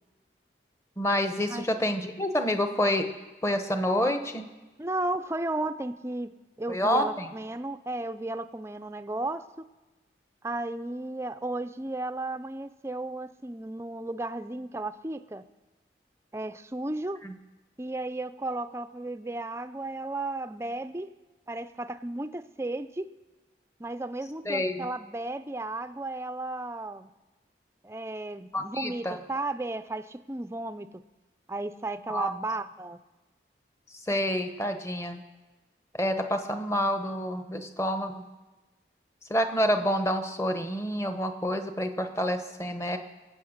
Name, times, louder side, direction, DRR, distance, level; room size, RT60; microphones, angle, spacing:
voice 1, 1.0-3.1 3.4-4.5 6.7-7.3 17.2-17.3 24.4-24.9 28.5-29.2 32.1-32.3 33.9-35.2 35.9-38.2 39.3-43.0, equal, 15° left, 7 dB, 0.9 m, -28 dB
voice 2, 4.8-9.7 10.4-15.4 16.3-17.2 17.8-21.1 21.5-23.1 23.8-27.1 27.8-30.9 31.5-33.0, right 2 dB, 15° right, 11 dB, 0.4 m, -34 dB
23.0 x 8.6 x 6.5 m, 1.2 s
head